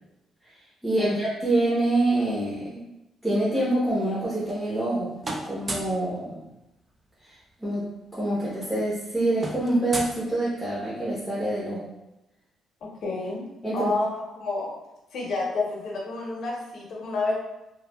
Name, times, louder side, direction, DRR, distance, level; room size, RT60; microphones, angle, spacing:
voice 1, 0.8-2.9 3.2-5.1 5.4-6.4 7.2-11.9 13.6-13.9, right 1 dB, 5° right, -9 dB, 0.8 m, -26 dB
sound 1, 4.2-4.9 5.2-6.0 7.4-7.5 7.7-8.0 8.2-10.9, right 2 dB, 30° right, 0.4 m, -36 dB
voice 2, 13.0-13.4 13.7-14.7 15.1-17.4, left 3 dB, 65° left, -2 dB, 0.7 m, -29 dB
3.0 x 2.2 x 2.2 m, 0.93 s
cardioid pair, 90°, 0 cm